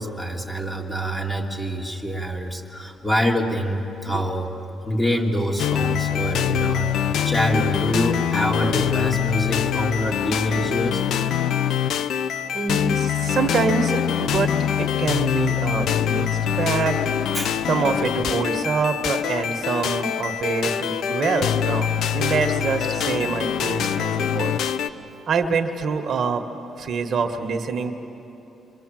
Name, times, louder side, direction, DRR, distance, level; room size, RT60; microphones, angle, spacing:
voice 1, 0.0-4.5 4.8-11.0 17.3-17.6 20.7-20.8, equal, 10° left, 0 dB, 2.9 m, -25 dB
sound 1, 5.6-24.9, left 9 dB, 75° left, 0.7 m, -24 dB
voice 2, 12.5-17.1 17.7-24.6 25.3-26.4 26.8-27.9, right 5 dB, 55° right, 6 dB, 1.5 m, -25 dB
26.5 x 22.5 x 7.7 m, 2.9 s
cardioid pair, 90°, 0 cm